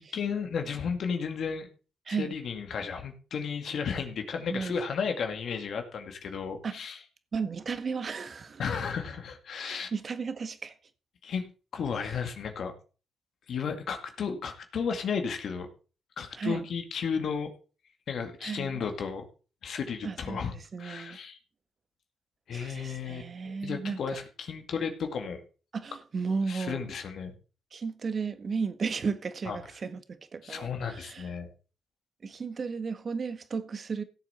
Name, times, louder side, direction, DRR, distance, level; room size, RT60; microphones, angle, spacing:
voice 1, 0.0-1.7 2.1-7.0 8.6-9.9 11.2-11.5 11.7-12.7 13.5-15.7 16.2-17.5 18.1-19.2 19.6-20.5 20.8-21.4 22.5-25.4 26.5-27.3 29.5-29.6 30.4-31.5, left 6 dB, 70° left, 2.1 m, -33 dB
voice 2, 7.3-8.6 9.6-10.7 16.4-16.6 18.4-18.8 20.0-21.2 22.5-24.2 25.7-26.9 27.7-31.3 32.2-34.0, right 5 dB, 55° right, 1.5 m, -34 dB
16.5 x 7.3 x 4.3 m
supercardioid pair, 45°, 0 cm